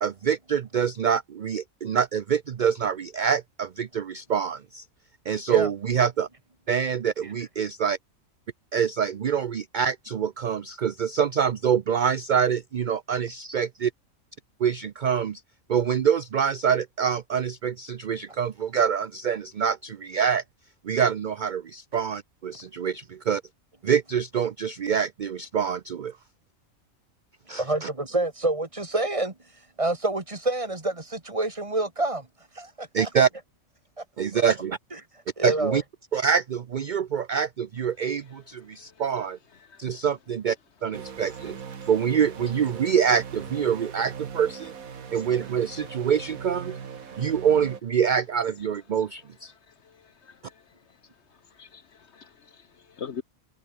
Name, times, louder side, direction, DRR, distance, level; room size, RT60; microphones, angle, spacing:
voice 1, 0.0-4.8 5.3-6.3 6.7-8.0 8.7-13.9 14.6-15.4 15.7-20.4 20.8-23.4 23.8-26.1 27.5-27.9 32.9-33.3 34.2-34.8 35.4-35.8 36.1-39.4 39.8-40.6 40.8-41.6 41.9-44.7 45.1-46.8 47.2-49.5, right 7 dB, 50° right, 0.6 m, -25 dB
voice 2, 13.3-13.6 27.6-29.3 29.8-32.3 32.6-33.1 34.0-34.1 34.3-34.4 35.4-35.8, right 2 dB, 25° right, 1.9 m, -27 dB
voice 3, 39.6-39.9 49.8-50.6 51.5-53.2, left 7 dB, 55° left, 1.2 m, -43 dB
sound 1, 40.9-47.8, right 7 dB, 85° right, 2.0 m, -40 dB
omnidirectional pair, 1.4 m